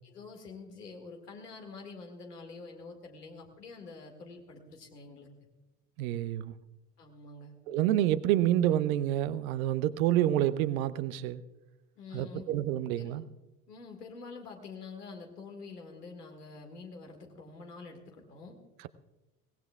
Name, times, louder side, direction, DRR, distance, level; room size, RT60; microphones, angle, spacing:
voice 1, 0.0-5.3 7.0-7.5 12.0-12.5 13.0-13.2 13.7-18.6, left 4 dB, 80° left, 3 dB, 2.1 m, -47 dB
voice 2, 6.0-6.5 7.7-11.4 12.1-13.2, right 12 dB, 60° right, 14 dB, 0.8 m, -28 dB
22.5 x 18.0 x 2.3 m, 1.0 s
figure-of-eight pair, 60°, 47 cm